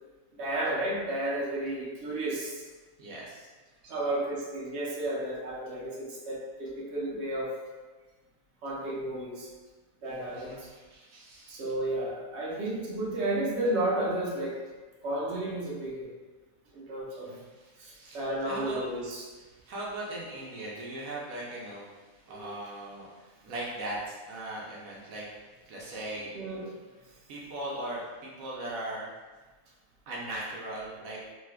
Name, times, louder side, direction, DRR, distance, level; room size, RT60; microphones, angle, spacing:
voice 1, 0.3-2.6 3.9-7.5 8.6-9.5 10.0-10.7 11.5-14.6 15.0-16.1 16.7-17.3 17.8-19.2 22.3-22.5 26.3-26.7, right 1 dB, 60° right, -6 dB, 1.0 m, -32 dB
voice 2, 3.0-3.5 3.8-4.0 10.3-11.6 17.2-18.8 19.5-21.9 22.3-23.1 23.4-25.3 25.7-26.3 27.3-29.1 30.1-31.2, right 1 dB, 85° right, -5 dB, 1.1 m, -39 dB
3.3 x 2.8 x 2.2 m, 1.3 s
omnidirectional pair, 1.4 m